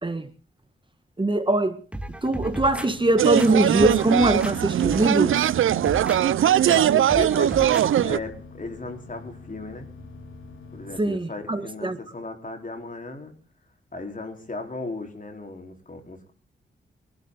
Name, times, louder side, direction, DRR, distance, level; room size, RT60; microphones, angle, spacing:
voice 1, 1.2-1.8 2.1-5.5 11.0-12.0, right 2 dB, 25° right, 1.7 m, -22 dB
sound 1, 1.9-2.9 3.4-4.6 4.8-5.2 5.6-6.2 6.7-6.8 7.1-7.9 8.2-8.3, right 1 dB, 5° right, 2.0 m, -35 dB
sound 2, 2.2-11.0, left 3 dB, 85° left, 2.7 m, -44 dB
sound 3, 3.2-8.2, right 10 dB, 85° right, 0.7 m, -20 dB
voice 2, 6.6-7.7 8.0-9.9 10.7-13.3 13.9-16.3, left 3 dB, 40° left, 4.5 m, -36 dB
24.5 x 12.0 x 4.1 m
cardioid pair, 55°, 20 cm